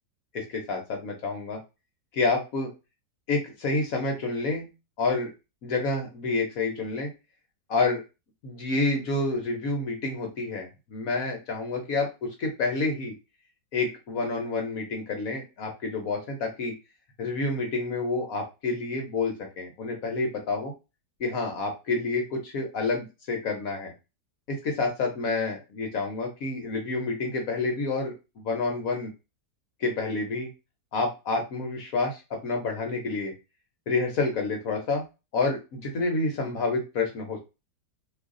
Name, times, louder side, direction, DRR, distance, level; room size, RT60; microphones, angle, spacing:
voice 1, 0.3-1.6 2.1-2.7 3.3-4.7 5.0-5.3 5.6-7.1 7.7-8.0 8.4-13.1 13.7-16.7 17.2-20.7 21.2-23.9 24.5-29.1 29.8-30.5 30.9-33.3 33.9-35.0 35.3-37.4, left 3 dB, 60° left, 2 dB, 1.0 m, -28 dB
3.1 x 2.5 x 3.6 m, 0.27 s
omnidirectional pair, 1.9 m